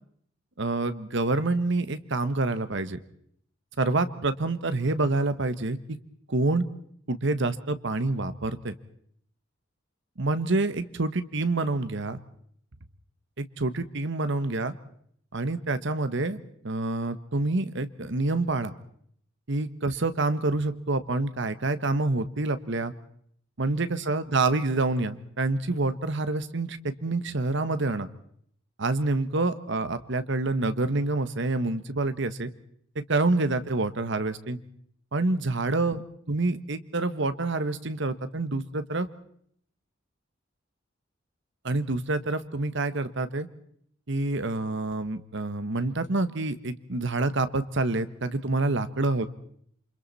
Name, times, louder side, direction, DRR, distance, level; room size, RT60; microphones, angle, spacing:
voice 1, 0.6-3.0 3.8-6.0 6.3-6.6 7.1-8.7 10.2-12.2 13.4-14.7 15.3-18.7 19.5-22.9 23.6-28.1 28.8-32.5 33.1-34.6 35.1-36.0 36.3-39.1 41.6-43.5 44.1-49.3, right 2 dB, 65° right, 12 dB, 1.3 m, -27 dB
28.0 x 25.5 x 4.2 m, 0.66 s
head